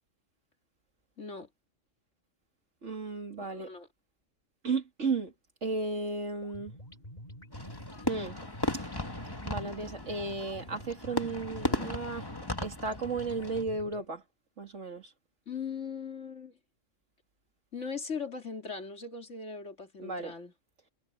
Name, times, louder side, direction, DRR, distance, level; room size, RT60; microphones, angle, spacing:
voice 1, 1.2-1.5 3.5-3.9 15.5-16.6 17.7-20.5, left 5 dB, 70° left, 3.1 m, -39 dB
voice 2, 2.8-3.7 4.6-5.3 5.6-6.8 8.0-8.4 8.7-8.9 9.4-12.3 12.6-14.2 14.6-15.1 20.0-20.3, right 3 dB, 70° right, 2.8 m, -34 dB
sound 1, 6.4-14.1, equal, 35° left, 6.3 m, -48 dB
Fireworks, 7.5-13.6, left 1 dB, 20° left, 1.8 m, -36 dB
omnidirectional pair, 1.3 m